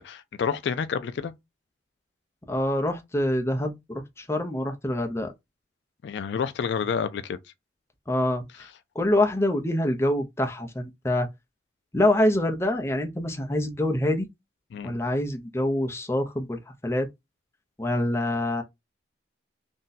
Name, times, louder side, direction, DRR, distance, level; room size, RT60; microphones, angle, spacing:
voice 1, 0.0-1.3 6.0-7.4 14.7-15.0, left 6 dB, 70° left, 0.3 m, -29 dB
voice 2, 2.5-5.3 8.1-8.7 8.9-11.3 11.9-14.3 14.8-17.1 17.8-18.6, left 1 dB, 15° left, 0.5 m, -25 dB
2.6 x 2.2 x 3.9 m
head